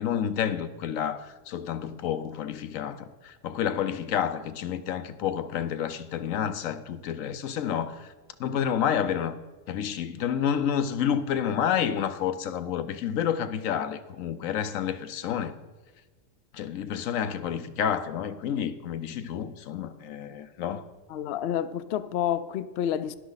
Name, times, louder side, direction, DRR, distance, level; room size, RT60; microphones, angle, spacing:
voice 1, 0.0-8.1 8.4-9.3 9.7-15.6 16.5-20.9, left 8 dB, 80° left, 1.1 m, -29 dB
voice 2, 21.1-23.1, left 10 dB, 65° left, 0.7 m, -29 dB
12.5 x 11.0 x 4.0 m
omnidirectional pair, 1.4 m